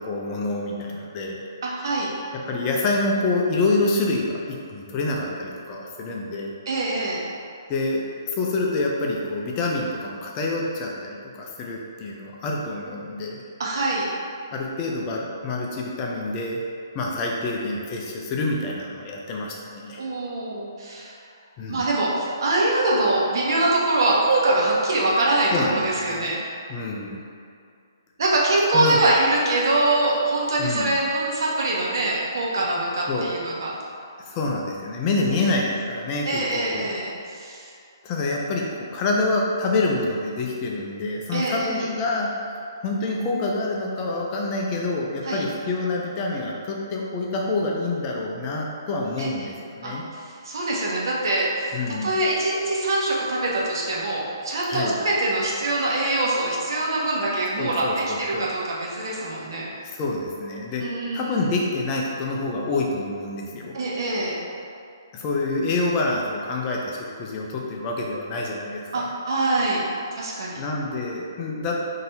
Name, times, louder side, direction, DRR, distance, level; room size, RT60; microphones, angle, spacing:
voice 1, 0.0-1.4 2.5-6.5 7.7-13.4 14.5-16.6 16.9-20.0 21.6-21.8 25.5-26.3 26.7-27.2 28.7-29.0 30.6-31.0 33.1-33.3 34.3-36.4 36.7-36.9 38.0-50.0 51.7-52.1 54.7-55.0 57.6-58.5 59.8-60.8 61.1-63.7 65.1-69.1 70.6-71.8, left 2 dB, 25° left, -2 dB, 0.5 m, -27 dB
voice 2, 1.6-2.1 6.7-7.2 13.6-14.1 20.0-21.1 21.7-26.4 28.2-33.7 35.4-35.5 36.2-37.7 41.3-41.8 45.2-45.4 49.2-49.5 49.8-49.9 50.4-51.8 52.0-59.7 60.8-61.4 63.7-64.4 68.9-69.8 70.1-70.6, right 2 dB, 65° right, -4 dB, 1.1 m, -24 dB
3.8 x 2.8 x 4.1 m, 2.4 s
hypercardioid pair, 150°, 2 cm